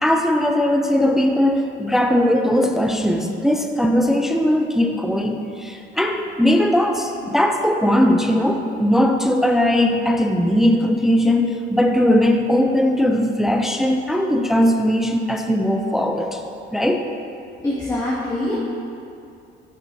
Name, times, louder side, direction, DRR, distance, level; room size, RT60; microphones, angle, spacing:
voice 1, 0.0-16.4 16.7-17.0, left 1 dB, ahead, 3 dB, 0.5 m, -19 dB
voice 2, 17.6-18.5, left 1 dB, 15° left, -10 dB, 1.8 m, -24 dB
12.0 x 5.5 x 2.7 m, 2.5 s
cardioid pair, 90°, 20 cm